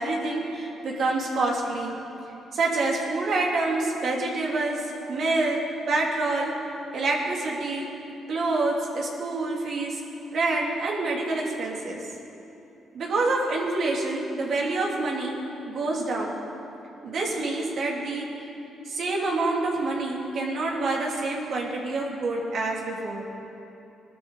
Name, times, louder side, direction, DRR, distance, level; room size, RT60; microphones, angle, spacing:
voice 1, 0.0-1.9 2.5-4.8 5.1-6.5 6.9-7.9 8.3-10.0 10.3-12.0 12.9-15.4 15.6-16.4 17.0-18.3 18.9-23.2, right 2 dB, 60° right, -2 dB, 2.9 m, -27 dB
20.5 x 13.0 x 4.2 m, 2.9 s
cardioid pair, 90°, 0 cm